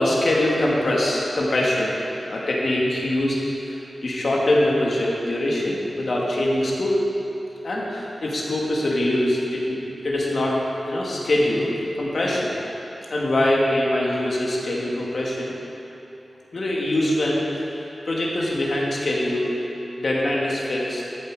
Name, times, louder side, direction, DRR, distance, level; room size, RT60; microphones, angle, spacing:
voice 1, 0.0-1.9 2.3-3.4 3.6-3.8 4.0-7.0 7.6-9.8 10.0-10.6 10.9-12.5 13.1-15.5 16.5-17.7 18.1-19.5 20.0-21.0, left 1 dB, 65° left, -4 dB, 2.3 m, -23 dB
12.5 x 8.5 x 5.0 m, 3.0 s
cardioid pair, 55°, 0 cm